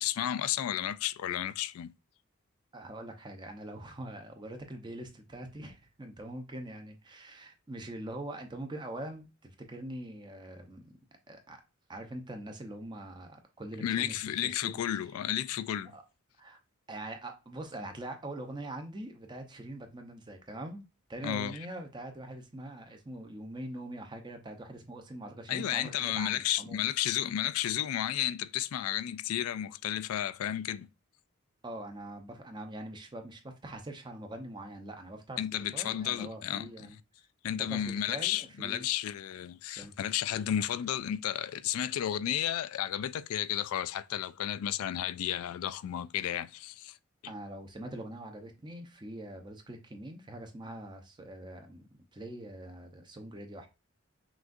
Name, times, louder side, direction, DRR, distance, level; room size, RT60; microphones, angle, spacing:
voice 1, 0.0-1.9 13.8-16.0 21.2-21.6 25.5-30.9 35.4-36.9 37.4-47.0, left 11 dB, 85° left, 0.3 m, -32 dB
voice 2, 2.7-11.0 11.3-11.6 11.9-14.7 15.9-16.0 16.4-16.6 16.9-20.8 21.1-26.9 31.6-35.4 35.7-37.0 37.5-38.9 39.8-39.9 47.3-53.7, right 1 dB, 20° right, 0.6 m, -43 dB
6.0 x 2.4 x 2.5 m
head